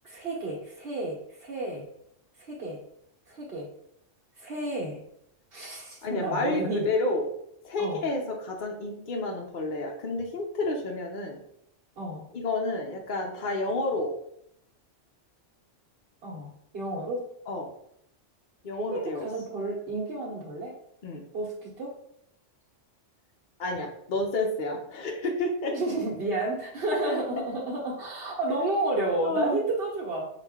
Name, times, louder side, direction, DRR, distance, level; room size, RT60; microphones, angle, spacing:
voice 1, 0.0-1.8 2.4-2.8 3.3-3.7 4.4-5.0 5.5-6.9 7.8-8.1 12.0-12.3 16.2-17.3 18.9-20.7 21.3-21.9 25.7-30.3, right 2 dB, 55° right, -5 dB, 1.3 m, -31 dB
voice 2, 6.0-7.3 7.6-11.4 12.3-14.1 17.5-17.7 18.6-19.3 21.0-21.3 23.6-25.7 27.1-27.2 29.2-29.6, left 2 dB, 50° left, 1 dB, 0.7 m, -30 dB
5.7 x 2.4 x 3.5 m, 0.73 s
omnidirectional pair, 1.2 m